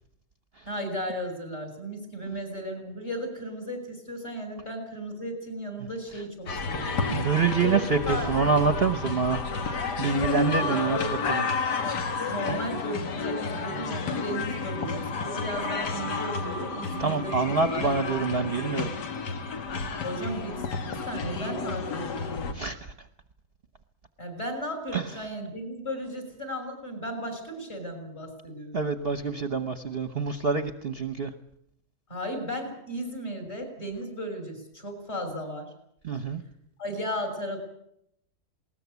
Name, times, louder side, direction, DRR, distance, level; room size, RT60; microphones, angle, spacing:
voice 1, 0.7-7.0 7.6-8.5 10.4-11.1 12.3-17.9 20.0-20.6 20.9-22.1 24.2-28.8 32.1-35.7 36.8-37.6, equal, 40° left, 4 dB, 6.8 m, -35 dB
sound 1, 6.5-22.5, left 4 dB, 85° left, 2.2 m, -31 dB
voice 2, 7.1-9.5 10.0-11.0 11.3-11.4 12.5-12.6 17.0-18.9 22.5-22.9 24.9-25.0 28.7-31.3 36.0-36.4, right 5 dB, 45° right, 8 dB, 1.1 m, -26 dB
20.5 x 19.5 x 8.3 m, 0.74 s
omnidirectional pair, 1.8 m